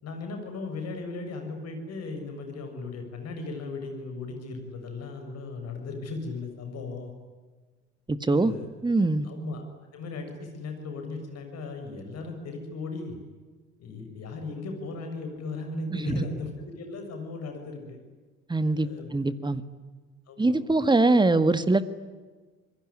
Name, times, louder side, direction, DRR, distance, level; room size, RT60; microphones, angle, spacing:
voice 1, 0.0-7.1 8.3-8.7 9.2-9.7 9.9-13.2 13.8-18.0 18.7-19.1 20.3-20.6, left 3 dB, 45° left, 5 dB, 7.0 m, -37 dB
voice 2, 8.1-8.5 8.8-9.3 15.9-16.2 18.5-19.6 20.4-21.8, right 2 dB, 15° right, 13 dB, 1.9 m, -23 dB
27.5 x 22.0 x 10.0 m, 1.4 s
figure-of-eight pair, 55°, 35 cm